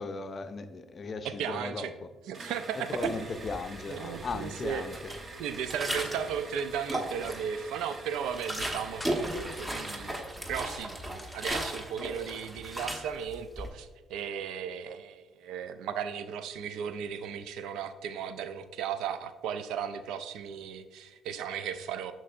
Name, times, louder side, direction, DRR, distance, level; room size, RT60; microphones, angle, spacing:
voice 1, 0.0-1.9 2.7-5.1, left 4 dB, 45° left, 0.5 m, -37 dB
voice 2, 1.2-1.9 2.3-3.3 3.9-4.9 5.4-10.2 10.5-22.1, right 8 dB, 75° right, 0.4 m, -36 dB
sound 1, 2.3-10.4, right 3 dB, 40° right, 0.9 m, -46 dB
sound 2, 2.9-3.8 4.1-6.4 6.7-7.6 8.0-13.7, right 1 dB, 20° right, 1.1 m, -36 dB
sound 3, 6.5-6.7 7.0-7.1 8.6-9.5 10.6-11.7, left 1 dB, 10° left, 1.0 m, -51 dB
6.7 x 6.0 x 2.5 m
hypercardioid pair, 55°, 0 cm